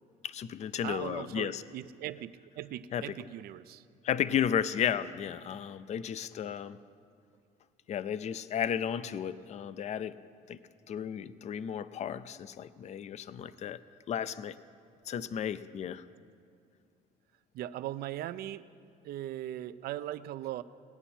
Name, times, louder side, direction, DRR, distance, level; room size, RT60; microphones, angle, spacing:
voice 1, 0.2-1.6 2.9-3.1 4.0-6.8 7.9-10.2 10.5-10.6 10.9-13.8 14.1-14.6 15.1-16.0, left 9 dB, 40° left, 15 dB, 0.4 m, -33 dB
voice 2, 0.8-3.8 13.4-13.5 17.5-18.7 19.0-20.6, right 13 dB, 65° right, 15 dB, 0.4 m, -39 dB
18.0 x 8.9 x 4.3 m, 2.3 s
cardioid pair, 110°, 17 cm